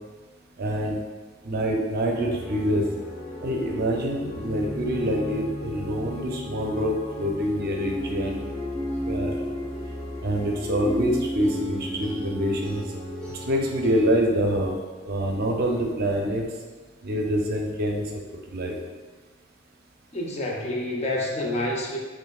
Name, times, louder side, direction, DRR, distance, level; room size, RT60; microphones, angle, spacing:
voice 1, 0.6-0.9 1.4-2.8 3.4-8.4 9.1-9.4 10.2-12.8 13.5-14.7 15.0-16.5 17.0-18.0 18.5-18.8, equal, 55° right, 1 dB, 0.5 m, -25 dB
sound 1, 2.2-14.1, left 1 dB, 5° left, 1.0 m, -34 dB
voice 2, 20.1-22.0, left 1 dB, 35° left, -1 dB, 0.5 m, -28 dB
4.1 x 3.1 x 2.3 m, 1.3 s
head